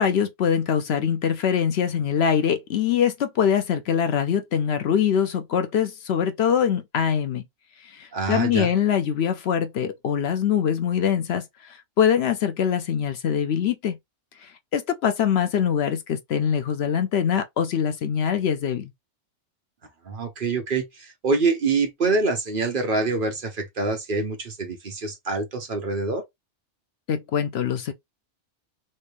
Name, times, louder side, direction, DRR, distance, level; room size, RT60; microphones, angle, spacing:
voice 1, 0.0-7.4 7.8-14.0 14.4-18.9 27.1-27.9, left 8 dB, 65° left, 0.7 m, -23 dB
voice 2, 8.1-8.7 20.1-26.2, right 3 dB, 50° right, 1.0 m, -25 dB
3.2 x 2.7 x 3.2 m
omnidirectional pair, 1.2 m